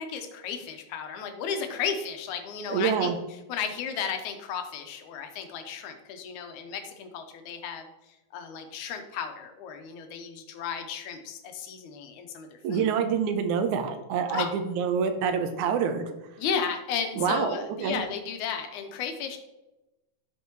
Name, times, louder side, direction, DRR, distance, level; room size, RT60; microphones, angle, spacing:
voice 1, 0.0-3.1 3.5-7.9 8.3-12.9 14.3-14.5 16.4-19.4, left 7 dB, 80° left, 6 dB, 2.3 m, -34 dB
voice 2, 2.7-3.2 12.6-16.1 17.2-18.0, right 6 dB, 85° right, 7 dB, 2.2 m, -27 dB
13.0 x 5.5 x 3.1 m, 0.98 s
omnidirectional pair, 3.4 m